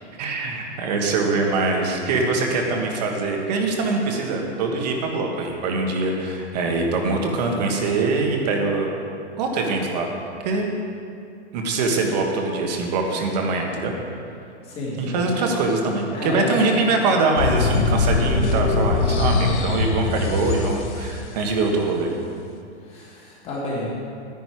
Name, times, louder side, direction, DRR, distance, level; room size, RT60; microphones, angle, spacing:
voice 1, 0.2-8.9 9.4-10.1 10.4-10.7 11.5-13.9 15.0-22.1, right 3 dB, 35° right, 2 dB, 1.5 m, -23 dB
voice 2, 14.6-15.3 16.1-16.6 22.8-23.9, left 2 dB, 15° left, -5 dB, 2.2 m, -31 dB
sound 1, 17.4-21.3, left 4 dB, 85° left, 1.2 m, -22 dB
11.5 x 10.5 x 4.7 m, 2.4 s
supercardioid pair, 175°, 34 cm